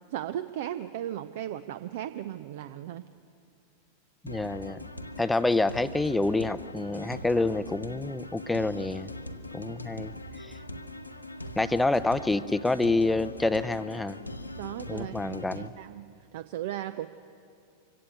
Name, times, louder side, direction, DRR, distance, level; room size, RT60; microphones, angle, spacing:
voice 1, 0.1-3.0 9.7-9.8 14.6-16.0 16.3-17.1, right 12 dB, 55° right, 13 dB, 0.5 m, -36 dB
voice 2, 4.2-4.8 5.2-9.1 9.5-10.6 11.6-14.2 14.9-15.7, left 2 dB, 5° left, 14 dB, 0.6 m, -27 dB
sound 1, 4.3-15.7, left 1 dB, 85° left, 0.9 m, -41 dB
25.0 x 16.5 x 8.2 m, 2.5 s
figure-of-eight pair, 90°, 0 cm